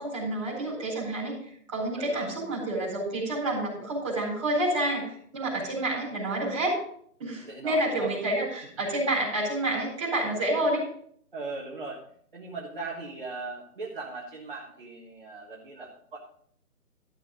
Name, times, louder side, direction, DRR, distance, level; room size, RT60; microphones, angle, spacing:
voice 1, 0.0-1.4 1.7-6.7 7.2-10.8, right 1 dB, 20° right, -5 dB, 4.2 m, -29 dB
voice 2, 2.0-2.3 7.4-8.1 11.3-12.0 12.3-16.2, right 3 dB, 35° right, -3 dB, 1.6 m, -39 dB
13.0 x 6.8 x 5.1 m, 0.62 s
hypercardioid pair, 175°, 46 cm